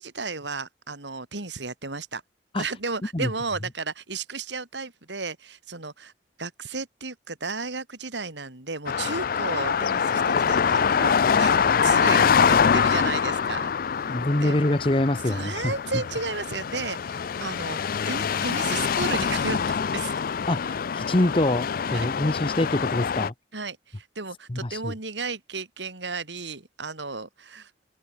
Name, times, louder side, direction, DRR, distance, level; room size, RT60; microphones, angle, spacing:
voice 1, 0.0-2.2 2.5-6.1 6.4-11.5 11.8-14.1 14.4-14.6 15.2-17.8 18.0-20.2 21.9-22.1 23.5-27.7, right 4 dB, 80° right, 3.2 m, -34 dB
sound 1, 8.9-23.3, left 6 dB, 55° left, 0.4 m, -24 dB
voice 2, 14.1-15.7 20.5-23.3 24.5-24.9, left 1 dB, 30° left, 1.1 m, -25 dB
open air
head